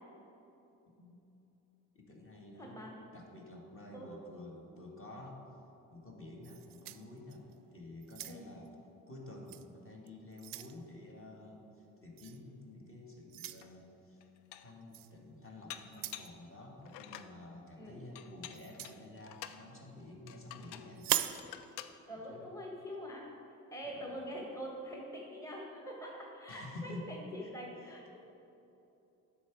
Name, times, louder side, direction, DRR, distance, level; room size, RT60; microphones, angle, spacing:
voice 1, 1.9-2.8 3.1-5.4 5.9-8.7 9.1-14.2 14.6-21.1 22.1-22.5 23.8-24.1 26.5-27.1 27.8-27.9, left 2 dB, 30° left, -1 dB, 1.7 m, -50 dB
voice 2, 2.6-2.9 3.9-4.1 8.3-8.5 17.7-18.0 22.1-23.3 23.7-28.2, equal, 5° left, -2 dB, 1.3 m, -44 dB
sound 1, 6.4-7.6 8.0-8.7 9.5-9.7 10.1-10.8 12.2-12.4 13.3-13.6 14.9-15.1 15.9-16.3 18.5-19.0 21.0-21.4, right 14 dB, 50° right, 0.5 m, -39 dB
Dishes pots and pans, 13.6-13.7 14.2-14.8 15.7-16.4 16.9-17.4 18.2-19.6 20.3-20.9 21.3-22.0, left 12 dB, 65° left, 0.5 m, -49 dB
8.0 x 5.9 x 4.7 m, 2.9 s
hypercardioid pair, 40°, 44 cm